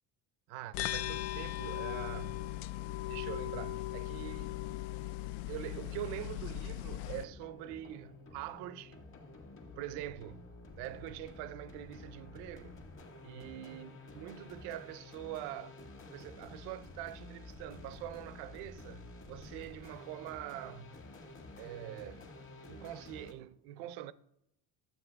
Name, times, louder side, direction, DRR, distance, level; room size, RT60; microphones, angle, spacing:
voice 1, 0.5-2.5 3.1-4.5 5.5-9.0 9.7-10.5 10.7-12.8 13.2-13.9 14.2-15.8 16.1-21.0 21.6-22.3 22.7-24.1, right 13 dB, 80° right, 0.6 m, -44 dB
sound 1, 0.7-7.2, left 15 dB, 80° left, 0.5 m, -38 dB
sound 2, 6.9-23.3, left 2 dB, 30° left, 1.6 m, -51 dB
11.0 x 7.9 x 3.4 m
cardioid pair, 125°, 40 cm